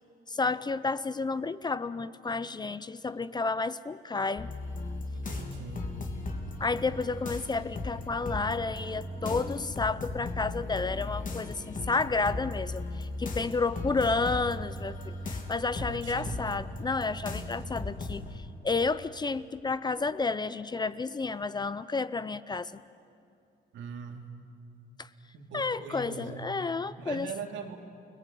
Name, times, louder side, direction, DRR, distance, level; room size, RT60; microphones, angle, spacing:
voice 1, 0.3-4.5 6.6-22.7 25.0-25.1 25.5-27.3, left 4 dB, 20° left, 15 dB, 0.6 m, -31 dB
sound 1, 4.4-18.4, left 2 dB, 45° left, 3.1 m, -37 dB
voice 2, 5.1-5.9 15.7-16.4 23.7-24.3 25.3-26.4 27.0-27.8, right 5 dB, 75° right, 4 dB, 2.8 m, -41 dB
29.0 x 19.0 x 9.2 m, 2.6 s
cardioid pair, 110°, 19 cm